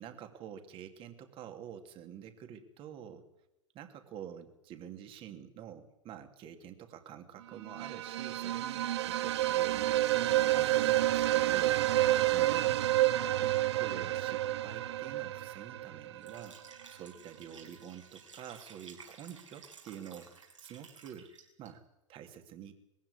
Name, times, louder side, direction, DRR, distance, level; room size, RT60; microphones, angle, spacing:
voice 1, 0.0-3.3 3.7-11.8 12.3-16.6 16.9-21.3 21.6-21.8 22.1-22.7, right 9 dB, 35° right, 7 dB, 2.8 m, -48 dB
sound 1, 7.7-16.5, right 15 dB, 60° right, 0.8 m, -29 dB
Liquid, 16.2-21.7, right 5 dB, 75° right, 6.2 m, -54 dB
22.0 x 15.5 x 9.6 m, 0.87 s
figure-of-eight pair, 95°, 16 cm